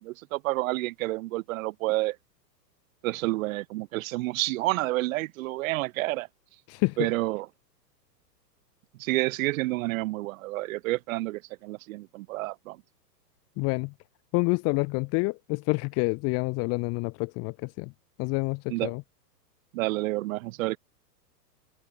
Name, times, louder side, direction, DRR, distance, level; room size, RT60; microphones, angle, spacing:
voice 1, 0.0-2.2 3.0-6.3 7.0-7.5 9.0-12.8 18.7-18.9 19.7-20.8, right 20 dB, 50° right, 4.4 m, -29 dB
voice 2, 6.7-7.1 13.6-13.9 14.3-17.9 18.2-19.0, left 29 dB, 30° left, 0.9 m, -28 dB
open air
hypercardioid pair, 125°, 50 cm